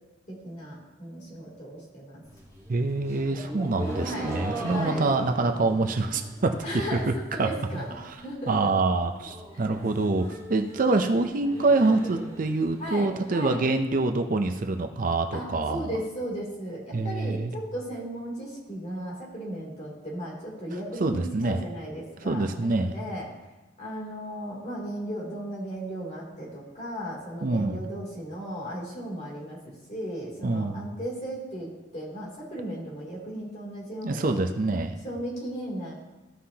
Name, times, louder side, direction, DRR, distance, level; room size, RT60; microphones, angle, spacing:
voice 1, 0.3-2.2 4.0-4.3 4.6-5.1 6.6-8.7 12.8-13.6 15.3-23.3 23.8-29.6 29.9-34.4 35.0-35.9, equal, 35° left, -4 dB, 2.9 m, -36 dB
sound 1, 2.2-7.3 7.6-8.1 8.4-8.5 8.7-8.8 9.1-13.1, right 1 dB, 20° left, 1.9 m, -39 dB
voice 2, 2.7-6.6 7.4-7.8 8.5-15.9 16.9-17.5 21.0-21.6 22.2-22.9 27.4-27.8 30.4-30.9 34.0-34.9, right 3 dB, 45° right, 6 dB, 0.5 m, -26 dB
15.0 x 5.7 x 2.8 m, 1.1 s
head